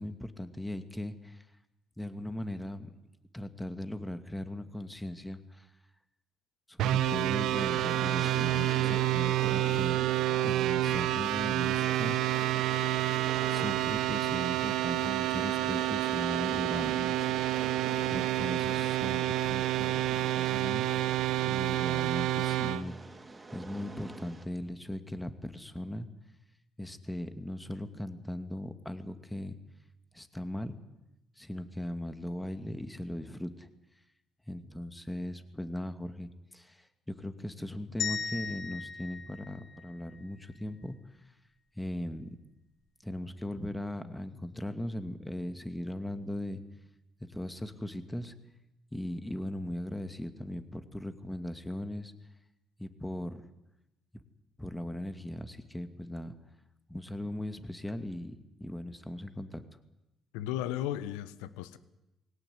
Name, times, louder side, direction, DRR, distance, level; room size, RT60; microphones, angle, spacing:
voice 1, 0.0-1.4 2.0-2.9 3.3-5.7 6.7-10.0 10.4-12.2 13.5-17.3 18.1-20.9 21.4-22.9 23.5-26.1 26.8-29.6 30.1-30.8 31.4-33.7 34.5-41.0 41.8-42.3 43.0-46.6 47.3-48.3 48.9-52.1 52.8-53.5 54.1-54.2 54.6-56.3 56.9-58.3 58.6-59.6, left 1 dB, 10° left, 9 dB, 2.5 m, -38 dB
sound 1, 6.8-22.8, right 15 dB, 75° right, 1.0 m, -29 dB
Train, 7.5-24.5, right 3 dB, 30° right, 4.2 m, -45 dB
sound 2, 38.0-40.2, left 6 dB, 70° left, 3.4 m, -37 dB
voice 2, 60.3-61.8, left 12 dB, 85° left, 15 dB, 1.2 m, -35 dB
21.5 x 17.5 x 9.7 m, 0.92 s
hypercardioid pair, 55°, 0 cm